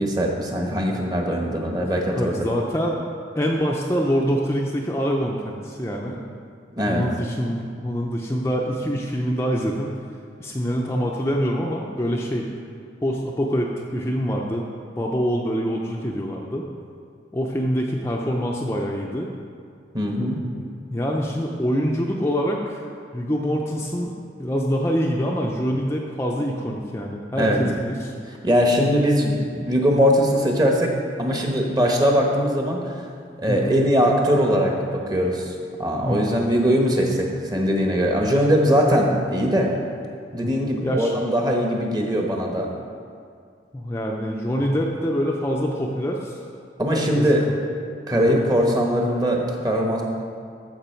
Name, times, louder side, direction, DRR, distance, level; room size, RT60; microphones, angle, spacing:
voice 1, 0.0-2.3 6.8-7.0 19.9-20.4 27.4-27.7 28.4-30.9 31.2-32.8 33.4-39.7 40.3-42.7 46.8-47.5 48.1-50.0, equal, 20° right, 1 dB, 1.1 m, -21 dB
voice 2, 1.8-3.0 3.4-6.2 6.9-9.9 10.4-12.5 13.0-14.6 15.0-16.6 17.3-19.3 20.9-22.8 23.1-24.1 24.4-28.1 33.4-33.8 36.1-36.4 40.8-41.1 43.7-46.4 46.9-47.4 48.1-48.4, equal, 15° left, -1 dB, 0.5 m, -25 dB
14.0 x 5.9 x 4.5 m, 2.2 s
head